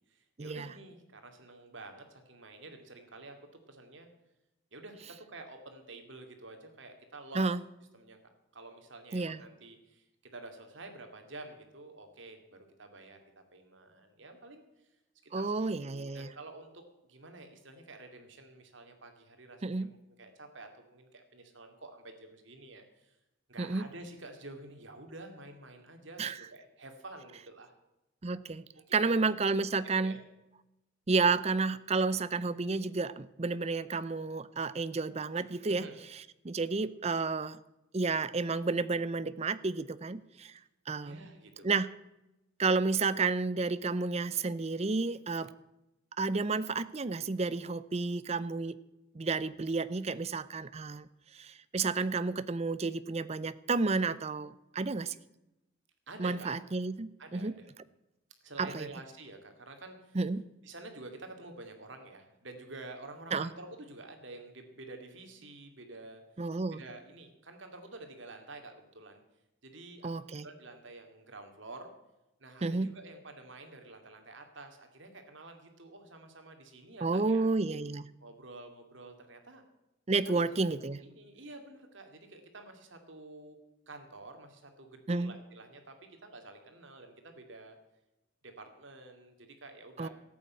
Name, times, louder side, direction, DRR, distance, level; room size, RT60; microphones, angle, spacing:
voice 1, 0.1-4.1 4.7-7.6 7.9-8.2 8.5-13.2 13.5-14.6 15.2-16.8 17.1-23.2 23.5-27.7 28.7-29.4 30.0-30.2 35.6-36.0 41.0-41.8 56.1-56.5 57.2-57.7 58.4-60.2 60.6-66.2 66.7-69.2 69.6-71.9 72.4-77.5 78.2-79.6 80.3-80.6 80.9-83.6 83.9-87.8 88.4-90.1, right 2 dB, 65° right, 5 dB, 2.3 m, -49 dB
voice 2, 15.3-16.3 19.6-19.9 23.6-23.8 26.2-26.4 28.2-28.6 28.9-30.2 31.1-35.9 36.4-37.6 37.9-40.5 40.9-41.3 41.6-41.9 42.6-45.5 46.2-48.8 49.1-51.1 51.3-55.1 56.2-57.5 58.6-58.9 60.1-60.4 63.3-63.5 66.4-66.8 70.0-70.5 72.6-72.9 77.0-78.1 80.1-81.0 85.1-85.3 90.0-90.1, right 3 dB, 30° right, 16 dB, 0.5 m, -31 dB
14.0 x 8.5 x 8.5 m, 0.94 s
head